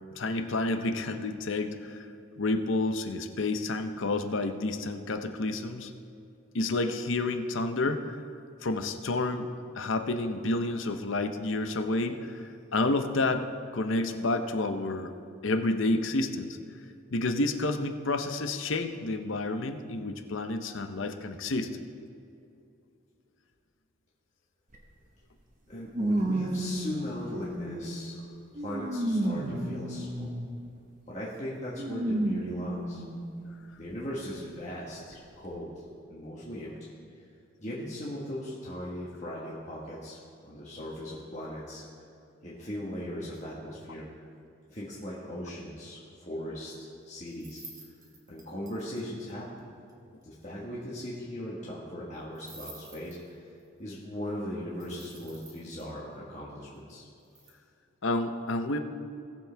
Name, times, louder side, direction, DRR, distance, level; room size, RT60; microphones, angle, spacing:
voice 1, 0.2-2.1 2.4-5.9 6.5-8.2 8.6-9.5 9.7-13.5 13.7-15.1 15.4-16.6 17.1-21.7 58.0-58.8, left 2 dB, 70° left, 7 dB, 0.7 m, -30 dB
sound 1, 24.7-24.8 25.9-28.0 28.6-30.6 31.8-33.2 33.9-34.0 35.1-35.2, right 1 dB, 40° right, 1.3 m, -31 dB
voice 2, 25.7-28.2 28.5-30.3 31.1-33.0 33.8-35.8 36.1-36.8 37.6-40.2 40.4-41.8 42.4-44.1 44.7-46.7 47.0-47.6 48.3-49.7 50.2-53.5 53.8-57.1, equal, 35° left, -6 dB, 1.4 m, -38 dB
sound 2, 47.3-49.0 49.3-49.4 49.6-49.7 49.9-50.0 50.2-50.3 52.3-53.6 54.8-55.8 57.2-57.5, right 2 dB, 20° right, 1.5 m, -50 dB
19.0 x 7.3 x 3.4 m, 2.5 s
head